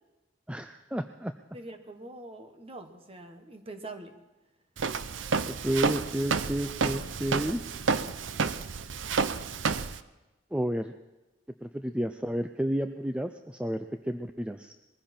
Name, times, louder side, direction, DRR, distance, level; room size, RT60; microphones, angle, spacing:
voice 1, 0.5-1.3 5.5-7.6 10.5-10.9 11.6-14.7, right 1 dB, 5° right, 8 dB, 0.4 m, -31 dB
voice 2, 1.5-4.2, right 2 dB, 30° right, 7 dB, 1.3 m, -44 dB
Walk footsteps, 4.8-10.0, right 5 dB, 85° right, 0.6 m, -30 dB
21.0 x 15.0 x 4.4 m, 1.1 s
head